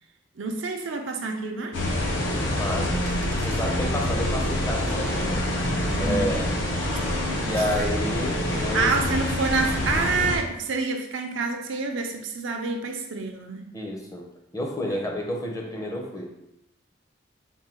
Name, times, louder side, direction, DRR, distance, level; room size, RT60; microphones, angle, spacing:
voice 1, 0.4-1.8 5.9-6.5 7.3-7.5 8.6-13.7 14.9-15.0, right 4 dB, 85° right, 3 dB, 0.5 m, -28 dB
sound 1, 1.7-10.4, left 1 dB, 75° left, 0.8 m, -26 dB
voice 2, 2.6-3.0 3.4-5.5 6.0-6.6 7.4-8.9 13.7-14.2 14.5-16.3, left 1 dB, 20° left, 0 dB, 0.6 m, -30 dB
Car, 3.1-4.0 5.2-6.5 7.4-8.2, right 1 dB, 35° right, 0.5 m, -41 dB
3.6 x 2.2 x 4.3 m, 0.82 s
head